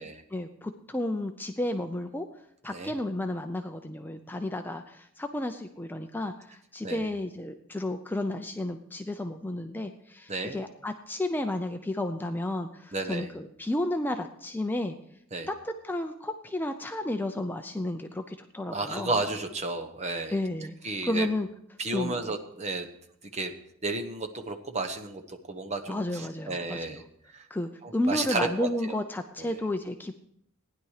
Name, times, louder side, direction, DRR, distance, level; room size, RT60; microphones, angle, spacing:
voice 1, 0.3-2.3 2.6-15.0 15.5-19.1 20.3-20.7 21.0-21.5 21.9-22.2 25.9-27.0 27.5-30.1, left 1 dB, 10° left, 6 dB, 0.5 m, -32 dB
voice 2, 10.3-10.6 12.9-13.3 15.3-15.5 18.7-20.4 20.8-21.3 21.8-22.9 23.2-23.5 23.8-27.0 27.3-27.5 27.8-29.0 29.4-29.6, right 3 dB, 30° right, 5 dB, 1.1 m, -32 dB
15.5 x 10.5 x 4.9 m, 0.73 s
head